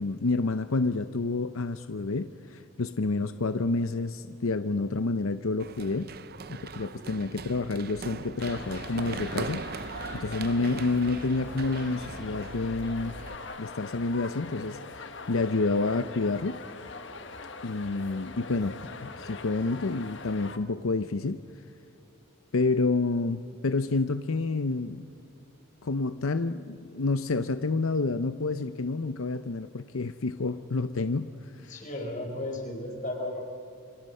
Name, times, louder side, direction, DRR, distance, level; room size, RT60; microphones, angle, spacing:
voice 1, 0.0-6.1 6.6-13.1 13.6-16.6 17.6-21.4 22.5-25.0 25.8-31.7, left 3 dB, 85° left, 10 dB, 0.7 m, -29 dB
Run, 5.6-13.4, right 4 dB, 45° right, 0.6 m, -40 dB
sound 1, 8.4-20.6, left 4 dB, 60° left, 1.3 m, -42 dB
voice 2, 31.7-33.4, left 1 dB, 40° left, 1 dB, 5.2 m, -34 dB
27.5 x 26.0 x 5.6 m, 2.6 s
head